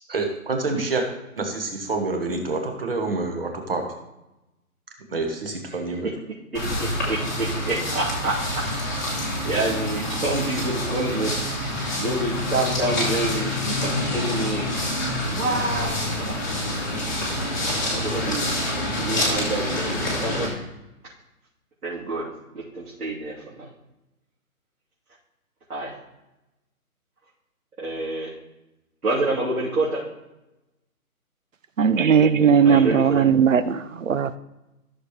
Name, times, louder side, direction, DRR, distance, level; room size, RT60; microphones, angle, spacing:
voice 1, 0.1-1.1 1.4-3.9 5.1-6.1, right 3 dB, 40° right, 4 dB, 1.5 m, -27 dB
sound 1, 6.5-20.5, left 1 dB, 15° left, 1.2 m, -27 dB
voice 2, 7.1-8.3 9.2-15.1 15.3-16.4 17.9-18.5 19.0-20.5 21.8-22.3 22.5-23.7 25.7-26.0 27.8-28.3 29.0-30.0 32.6-33.3, right 2 dB, 85° right, -8 dB, 3.4 m, -28 dB
voice 3, 31.8-34.4, right 7 dB, 60° right, 14 dB, 0.7 m, -18 dB
14.5 x 6.7 x 3.2 m, 0.96 s
hypercardioid pair, 180°, 44 cm